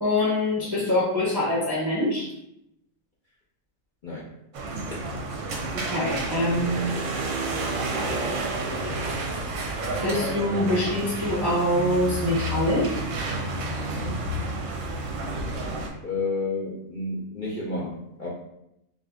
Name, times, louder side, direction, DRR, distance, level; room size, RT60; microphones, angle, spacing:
voice 1, 0.0-2.3 5.7-7.0 10.0-12.9, left 1 dB, 25° right, -7 dB, 0.5 m, -24 dB
sound 1, 4.5-15.9, right 2 dB, 65° right, 0.8 m, -30 dB
voice 2, 16.0-18.3, left 3 dB, 55° left, -7 dB, 0.5 m, -31 dB
2.8 x 2.5 x 3.5 m, 0.81 s
omnidirectional pair, 1.6 m